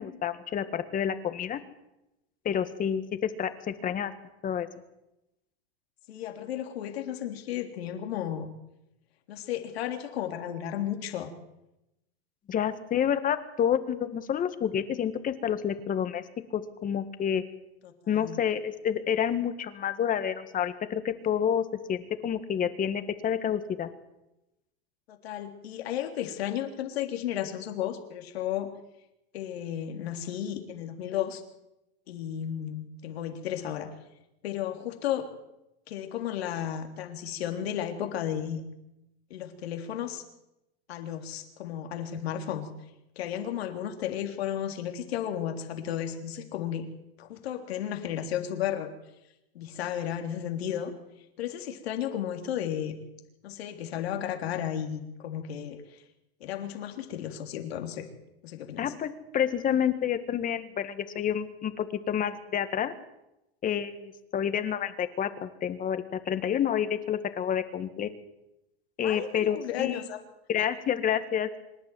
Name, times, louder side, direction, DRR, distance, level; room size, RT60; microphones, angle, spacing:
voice 1, 0.0-1.6 2.5-4.1 4.4-4.7 12.5-16.2 16.5-17.4 18.1-23.9 58.8-62.9 63.6-68.1 69.0-70.0 70.5-71.5, left 9 dB, 25° left, 10 dB, 1.7 m, -29 dB
voice 2, 6.1-8.5 9.3-11.3 17.8-18.4 25.1-28.7 29.3-31.4 32.1-33.9 34.4-35.3 35.9-38.6 39.3-40.2 40.9-42.7 43.2-46.9 47.2-48.9 49.6-50.9 51.4-53.0 53.4-56.0 56.4-58.1 58.4-58.9 69.0-70.2, left 10 dB, 80° left, 4 dB, 3.5 m, -33 dB
25.5 x 11.5 x 9.3 m, 0.90 s
supercardioid pair, 130°, 31 cm